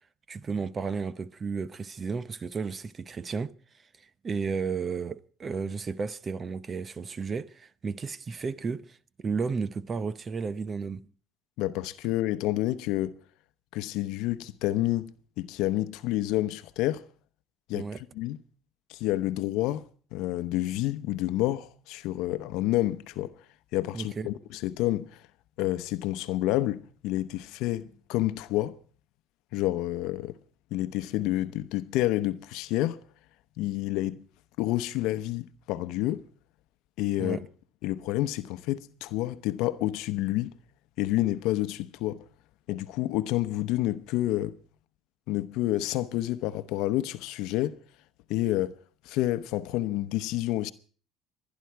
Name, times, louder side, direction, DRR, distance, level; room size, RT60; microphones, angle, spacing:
voice 1, 0.3-3.5 4.2-11.1 17.7-18.0 23.9-24.3 37.2-37.4, right 5 dB, 35° right, 0.8 m, -33 dB
voice 2, 11.6-13.1 13.7-17.0 17.7-17.9 18.1-18.4 18.9-19.9 20.1-23.3 23.7-25.2 25.6-28.8 29.5-30.4 30.7-33.0 33.6-34.2 34.6-36.3 37.0-37.4 37.8-40.5 41.0-42.2 42.7-44.6 45.3-47.7 48.3-48.8 49.0-50.7, left 15 dB, 75° left, 0.8 m, -29 dB
28.0 x 10.5 x 4.7 m
supercardioid pair, 85°, 0 cm